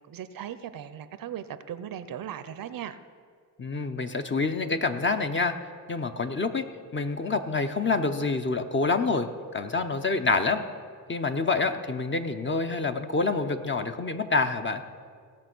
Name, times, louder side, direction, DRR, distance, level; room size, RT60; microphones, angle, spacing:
voice 1, 0.1-3.0, right 9 dB, 60° right, 13 dB, 0.7 m, -38 dB
voice 2, 3.6-5.5 5.9-6.6 6.9-10.6 11.1-14.8, left 3 dB, 30° left, 7 dB, 0.8 m, -27 dB
17.5 x 6.3 x 6.1 m, 2.1 s
cardioid pair, 75°, 38 cm